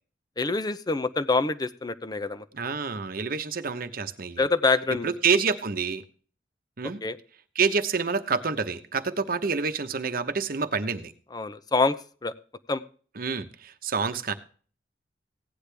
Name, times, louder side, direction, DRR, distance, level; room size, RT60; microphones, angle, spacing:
voice 1, 0.4-2.4 4.4-5.1 7.0-7.2 11.3-12.0 12.2-12.3 12.7-12.8, left 3 dB, 25° left, 12 dB, 0.6 m, -25 dB
voice 2, 2.5-4.4 5.0-6.0 6.8-7.0 7.5-11.1 13.2-14.3, right 5 dB, 55° right, 9 dB, 1.0 m, -27 dB
16.5 x 10.0 x 3.4 m, 0.42 s
head